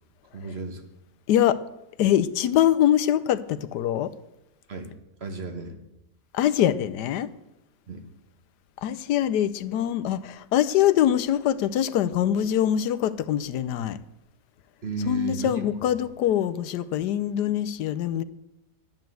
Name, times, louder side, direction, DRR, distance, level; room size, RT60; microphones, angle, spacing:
voice 1, 0.3-0.8 4.7-4.9 5.2-5.8 7.9-8.0 14.8-15.9, right 2 dB, 40° right, 6 dB, 1.4 m, -33 dB
voice 2, 1.3-1.6 2.0-4.1 6.3-7.3 8.8-14.0 15.1-18.2, left 11 dB, 85° left, 14 dB, 1.3 m, -23 dB
11.5 x 9.2 x 7.6 m, 0.92 s
omnidirectional pair, 1.7 m